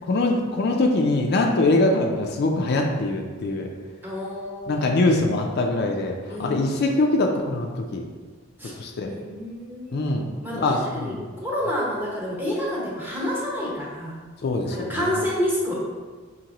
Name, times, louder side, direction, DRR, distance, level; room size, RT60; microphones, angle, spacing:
voice 1, 0.1-3.7 4.7-8.0 8.8-9.1 9.9-10.3 10.6-11.1 14.4-15.2, left 2 dB, 55° left, 2 dB, 0.4 m, -23 dB
voice 2, 4.0-5.2 6.3-6.6 8.6-8.7 9.0-10.0 10.4-14.2 14.7-15.7, equal, 10° right, -6 dB, 1.0 m, -29 dB
5.3 x 2.8 x 2.9 m, 1.4 s
head